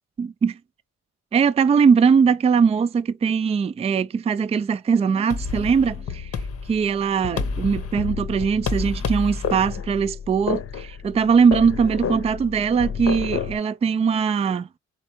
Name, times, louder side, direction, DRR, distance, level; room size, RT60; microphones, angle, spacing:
voice 1, 0.2-0.6 1.3-6.3 6.7-14.7, right 6 dB, 20° right, 0.3 m, -21 dB
sound 1, 5.3-13.6, left 6 dB, 50° left, 0.8 m, -29 dB
4.2 x 2.9 x 2.9 m
cardioid pair, 90°, 30 cm